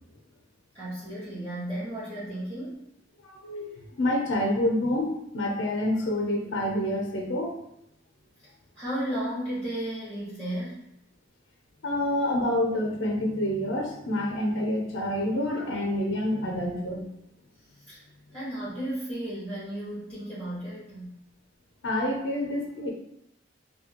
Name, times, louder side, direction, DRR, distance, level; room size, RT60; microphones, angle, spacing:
voice 1, 0.7-2.8 8.7-10.8 17.8-18.0 18.3-21.1, right 1 dB, 30° right, -13 dB, 1.2 m, -34 dB
voice 2, 3.2-7.6 11.8-17.0 21.8-22.9, left 1 dB, 85° left, 0 dB, 0.5 m, -28 dB
2.7 x 2.2 x 2.8 m, 0.79 s
head